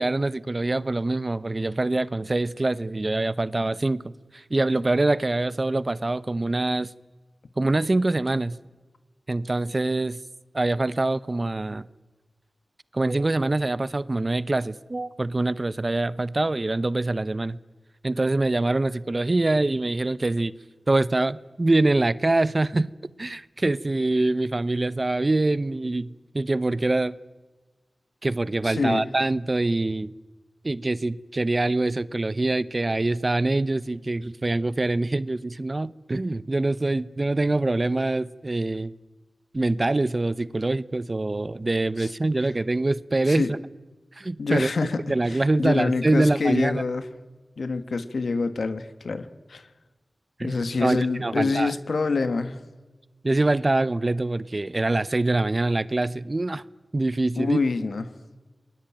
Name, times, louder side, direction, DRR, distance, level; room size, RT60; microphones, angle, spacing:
voice 1, 0.0-6.9 7.6-8.6 9.3-10.2 10.5-11.9 12.9-17.6 18.0-20.5 20.9-22.9 23.2-27.2 28.2-30.1 30.6-38.9 39.5-43.6 44.2-44.7 45.1-46.8 50.4-51.7 53.2-56.6 56.9-57.6, right 2 dB, 40° right, 0.8 m, -24 dB
voice 2, 28.6-29.1 42.0-42.1 43.3-43.5 44.4-47.1 47.6-49.6 50.4-52.6 57.4-58.0, left 4 dB, 80° left, 1.6 m, -26 dB
28.5 x 21.0 x 9.0 m
wide cardioid pair, 55°, 0 cm